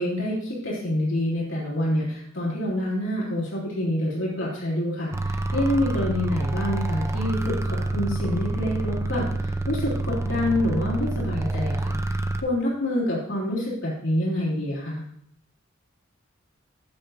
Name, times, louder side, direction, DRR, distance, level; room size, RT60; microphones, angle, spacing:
voice 1, 0.0-15.0, left 1 dB, 65° left, -6 dB, 3.2 m, -27 dB
sound 1, 5.1-12.4, right 2 dB, 15° right, 0.6 m, -27 dB
14.5 x 8.7 x 2.7 m, 0.67 s
head